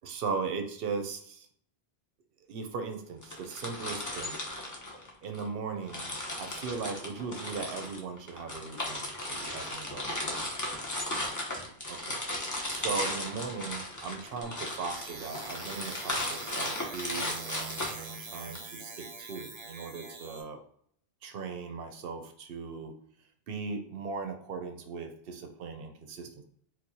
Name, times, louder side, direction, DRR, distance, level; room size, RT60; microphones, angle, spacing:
voice 1, 0.0-1.5 2.5-4.4 5.2-6.1 6.4-10.1 12.0-20.6 21.2-22.9 23.5-26.4, right 5 dB, 70° right, 5 dB, 0.7 m, -38 dB
sound 1, 3.2-5.5 5.9-18.6, left 1 dB, 25° left, 0.5 m, -36 dB
sound 2, 14.4-20.4, right 4 dB, 45° right, 0.4 m, -44 dB
4.4 x 2.0 x 2.7 m, 0.64 s
omnidirectional pair, 1.0 m